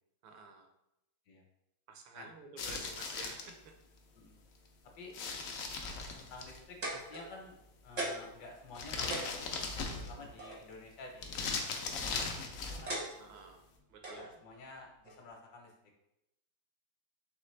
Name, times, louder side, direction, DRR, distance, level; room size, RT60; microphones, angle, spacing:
voice 1, 0.2-0.7 1.9-3.7 10.1-10.4 13.2-13.6 13.9-14.3, right 5 dB, 85° right, 3 dB, 1.4 m, -52 dB
sound 1, 2.6-3.5 5.1-6.6 8.7-10.3 11.2-12.9, left 4 dB, 85° left, 0.7 m, -38 dB
voice 2, 6.1-9.5 9.9-13.0 14.1-15.7, left 3 dB, 65° left, 1 dB, 1.3 m, -51 dB
sound 2, 6.8-7.6 8.0-8.4 8.7-8.8 9.1-10.6 11.7-12.1 12.9-13.5 14.0-14.2 15.1-15.2, right 1 dB, 40° right, 0.5 m, -39 dB
4.2 x 3.3 x 3.1 m, 0.88 s
omnidirectional pair, 2.1 m